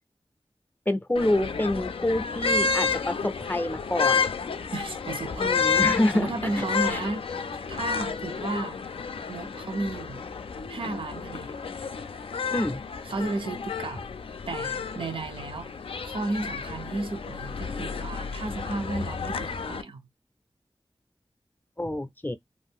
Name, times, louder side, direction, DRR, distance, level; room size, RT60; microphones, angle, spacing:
voice 1, 0.9-4.3 5.4-6.3 6.6-6.7 6.9-7.0 12.5-12.8 21.8-22.3, left 1 dB, 20° left, 0.5 m, -27 dB
sound 1, 1.2-19.8, left 5 dB, 90° left, 0.4 m, -30 dB
voice 2, 4.7-5.8 6.1-7.4 7.7-8.8 9.3-10.2 10.7-11.5 13.0-14.0 14.5-20.0, right 2 dB, 75° right, 0.6 m, -33 dB
2.5 x 2.4 x 3.5 m
wide cardioid pair, 80°, 9 cm